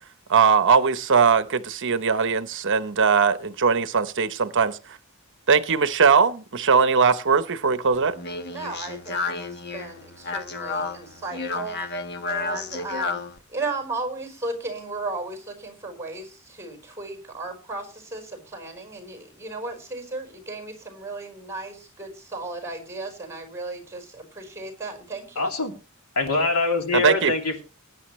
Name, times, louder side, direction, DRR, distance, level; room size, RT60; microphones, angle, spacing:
voice 1, 0.3-5.0 5.5-8.1 26.9-27.3, right 5 dB, 55° right, 0.9 m, -20 dB
Speech, 7.9-13.4, left 3 dB, 50° left, 1.3 m, -31 dB
voice 2, 8.5-11.8 12.3-13.2 13.5-25.5, right 3 dB, 10° right, 4.5 m, -35 dB
voice 3, 25.4-25.7 26.2-27.6, left 3 dB, 90° left, 2.8 m, -24 dB
20.5 x 9.6 x 3.1 m
head